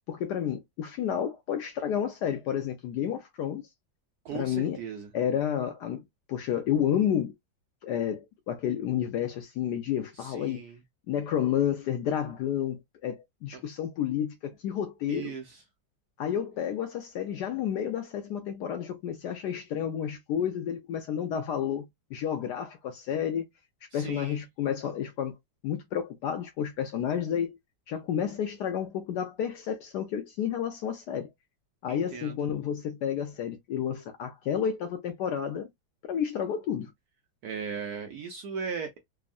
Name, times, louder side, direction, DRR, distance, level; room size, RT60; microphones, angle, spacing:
voice 1, 0.1-3.6 4.3-4.8 5.1-7.3 7.8-10.6 11.1-15.3 16.2-21.9 22.1-23.4 23.9-25.3 25.6-27.6 27.9-31.3 31.8-35.7 36.1-36.9, left 9 dB, 75° left, 1.0 m, -30 dB
voice 2, 4.2-5.1 10.2-10.8 13.5-13.6 15.1-15.6 23.9-24.4 31.9-32.4 37.4-39.0, right 6 dB, 70° right, 0.9 m, -37 dB
3.5 x 2.1 x 2.3 m
omnidirectional pair, 2.1 m